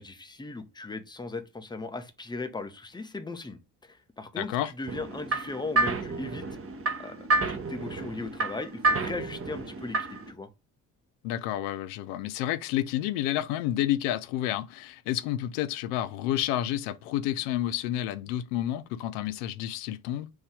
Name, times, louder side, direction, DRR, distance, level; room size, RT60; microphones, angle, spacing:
voice 1, 0.0-6.4 7.0-10.0 10.3-10.5, left 3 dB, 10° left, 0.8 m, -38 dB
voice 2, 4.4-4.7 11.2-20.3, left 12 dB, 70° left, 0.6 m, -30 dB
sound 1, 4.9-10.3, right 3 dB, 30° right, 1.0 m, -30 dB
4.7 x 2.7 x 3.3 m
figure-of-eight pair, 45°, 49 cm